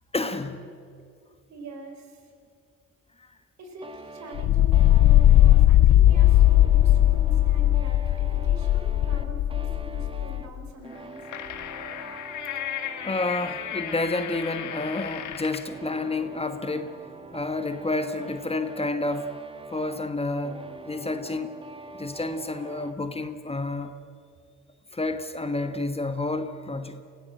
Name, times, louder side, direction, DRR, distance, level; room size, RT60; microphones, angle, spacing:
voice 1, 0.1-0.7 13.0-17.0 17.3-19.3 19.7-21.5 21.9-23.9 24.9-27.0, left 2 dB, 20° left, 8 dB, 1.3 m, -30 dB
voice 2, 1.5-2.3 3.6-11.3, right 2 dB, 65° right, 4 dB, 4.5 m, -43 dB
sound 1, 3.8-23.0, right 3 dB, 20° right, 1.4 m, -44 dB
sound 2, 4.3-10.4, left 13 dB, 65° left, 0.6 m, -18 dB
sound 3, 10.9-15.8, left 10 dB, 80° left, 1.6 m, -35 dB
27.5 x 16.5 x 7.8 m, 2.3 s
cardioid pair, 90°, 30 cm